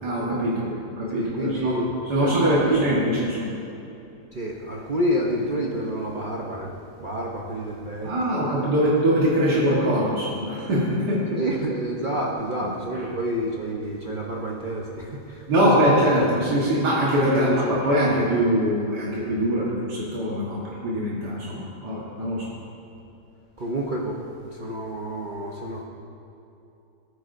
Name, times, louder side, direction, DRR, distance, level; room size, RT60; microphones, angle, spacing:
voice 1, 0.0-0.7 1.0-1.8 2.1-3.5 8.0-11.4 15.5-22.5, equal, 85° right, -7 dB, 2.1 m, -22 dB
voice 2, 1.1-1.9 2.2-2.8 4.3-6.7 7.0-8.1 11.4-15.5 17.4-17.8 23.6-24.2 24.5-25.8, right 1 dB, 40° right, -3 dB, 0.7 m, -28 dB
16.5 x 9.4 x 2.6 m, 2.8 s
omnidirectional pair, 1.7 m